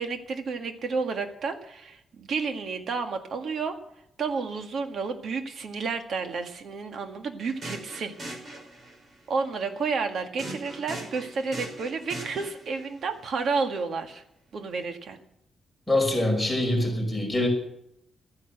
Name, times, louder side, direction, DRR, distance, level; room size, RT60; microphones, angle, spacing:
voice 1, 0.0-3.8 4.2-8.1 9.3-14.2 14.5-15.2, right 4 dB, 60° right, 6 dB, 1.9 m, -31 dB
sound 1, 7.4-9.1 10.4-12.9, right 2 dB, 45° right, 5.7 m, -39 dB
voice 2, 15.9-17.5, left 1 dB, 5° left, -1 dB, 5.6 m, -24 dB
13.5 x 10.5 x 8.0 m, 0.76 s
cardioid pair, 125°, 0 cm